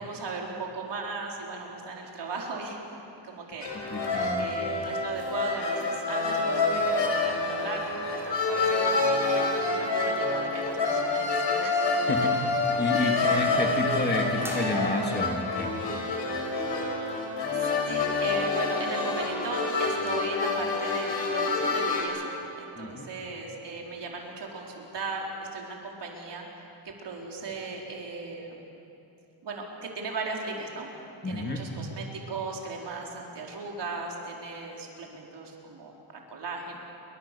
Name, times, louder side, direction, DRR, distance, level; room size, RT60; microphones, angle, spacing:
voice 1, 0.0-2.8 3.2-3.7 4.4-11.9 12.2-12.7 13.1-13.6 17.5-26.5 26.8-28.6 29.4-30.9 31.2-36.8, right 3 dB, 60° right, -1 dB, 4.5 m, -37 dB
sound 1, 3.6-22.0, left 3 dB, 65° left, 5.2 m, -27 dB
voice 2, 3.7-4.5 12.1-12.4 12.8-15.8 22.8-23.1 31.2-31.6, left 2 dB, 20° left, 2 dB, 1.9 m, -30 dB
sound 2, 14.4-15.4, right 1 dB, 5° right, 2.9 m, -42 dB
29.0 x 24.0 x 7.0 m, 2.8 s
wide cardioid pair, 180°, 46 cm